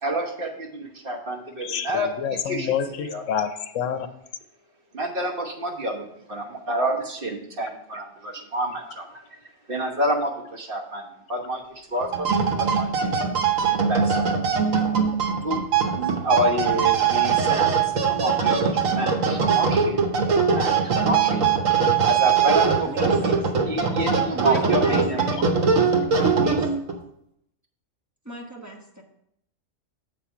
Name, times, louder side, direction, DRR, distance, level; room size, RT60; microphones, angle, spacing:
voice 1, 0.0-2.1 2.5-2.7 3.0-3.2 4.9-6.0 6.3-9.2 9.7-13.2 13.9-14.4 15.4-15.6 15.9-20.0 20.4-21.4 22.0-23.4 23.6-25.2, right 1 dB, 45° right, 0 dB, 1.3 m, -28 dB
voice 2, 1.6-4.1 25.3-25.4, left 8 dB, 80° left, 10 dB, 1.0 m, -28 dB
sound 1, 12.0-27.0, right 6 dB, 85° right, 1.3 m, -21 dB
voice 3, 22.8-23.2 24.3-25.4 26.4-26.7 28.2-29.0, right 1 dB, 15° right, -1 dB, 1.2 m, -37 dB
7.5 x 4.3 x 5.8 m, 0.75 s
omnidirectional pair, 1.3 m